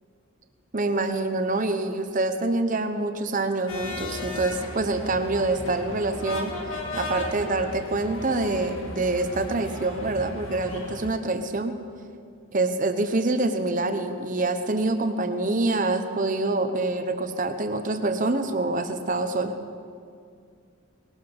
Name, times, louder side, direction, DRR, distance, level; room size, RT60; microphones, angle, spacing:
voice 1, 0.7-6.5 7.0-11.7 12.5-19.5, right 2 dB, 35° right, 7 dB, 0.9 m, -26 dB
sound 1, 3.7-11.1, left 2 dB, 65° left, 2.0 m, -35 dB
20.5 x 12.5 x 5.4 m, 2.2 s
head